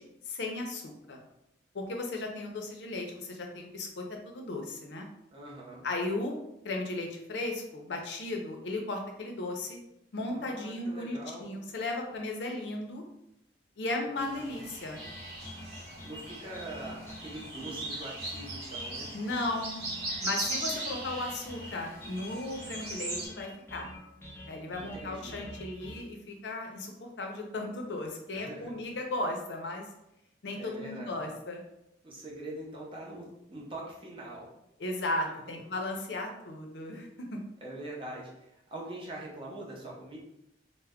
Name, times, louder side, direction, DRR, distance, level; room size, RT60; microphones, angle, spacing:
voice 1, 0.3-1.2 1.7-5.1 5.8-6.4 6.6-9.8 10.1-13.0 13.8-15.1 19.1-19.7 20.2-23.9 24.5-29.9 30.4-31.6 34.8-37.1, left 2 dB, 80° left, 2 dB, 0.5 m, -35 dB
voice 2, 5.3-5.9 10.3-11.6 14.1-14.7 16.0-19.1 24.7-25.5 28.3-28.7 30.5-31.3 32.0-34.5 35.3-35.6 37.6-40.2, right 1 dB, 30° right, -4 dB, 0.6 m, -43 dB
sound 1, 14.2-23.3, right 2 dB, 60° right, 0.9 m, -39 dB
sound 2, 14.9-26.0, left 1 dB, 15° left, 0.3 m, -47 dB
2.2 x 2.0 x 3.5 m, 0.84 s
head